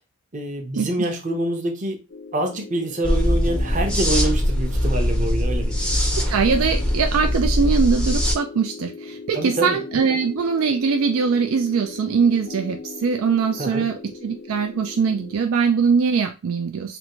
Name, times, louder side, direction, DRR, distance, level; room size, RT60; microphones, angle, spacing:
voice 1, 0.3-2.0 2.3-5.8 9.3-9.8 13.6-13.9, right 1 dB, 35° right, 3 dB, 0.7 m, -26 dB
sound 1, 2.1-15.4, left 4 dB, 65° left, 0.6 m, -39 dB
sound 2, 3.0-8.3, equal, 5° left, 0.5 m, -21 dB
voice 2, 6.3-13.9 14.2-17.0, right 5 dB, 80° right, 5 dB, 0.4 m, -22 dB
3.4 x 2.5 x 2.9 m, 0.28 s
head